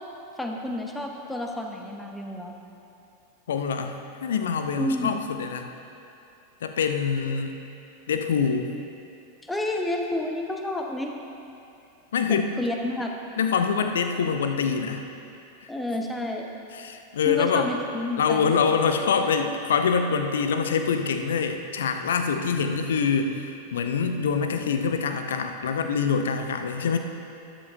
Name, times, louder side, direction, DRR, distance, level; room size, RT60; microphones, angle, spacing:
voice 1, 0.4-2.5 4.8-5.2 9.4-11.2 12.3-13.1 15.7-16.5 17.2-18.5, left 1 dB, 5° left, 2 dB, 0.9 m, -30 dB
voice 2, 3.5-5.7 6.6-7.6 8.1-8.7 12.1-12.5 13.4-15.0 16.8-17.7 18.2-27.0, left 6 dB, 60° left, 6 dB, 0.6 m, -25 dB
13.0 x 9.9 x 2.7 m, 2.7 s
figure-of-eight pair, 90°, 0 cm